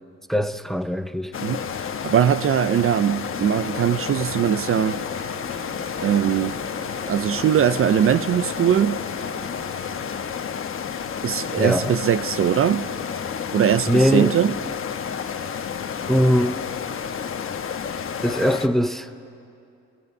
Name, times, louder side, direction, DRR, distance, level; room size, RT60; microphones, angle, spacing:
voice 1, 0.3-1.3 11.6-11.9 13.9-14.4 16.1-16.6 18.2-19.1, equal, ahead, 0.6 m, -21 dB
sound 1, 1.3-18.7, left 7 dB, 45° left, 1.2 m, -30 dB
voice 2, 1.4-5.0 6.0-6.6 7.1-9.1 11.2-12.9 13.5-14.6, right 9 dB, 45° right, 0.5 m, -21 dB
sound 2, 3.0-14.2 14.5-18.2, right 5 dB, 30° right, 2.1 m, -46 dB
28.0 x 21.0 x 5.4 m
cardioid pair, 90°, 30 cm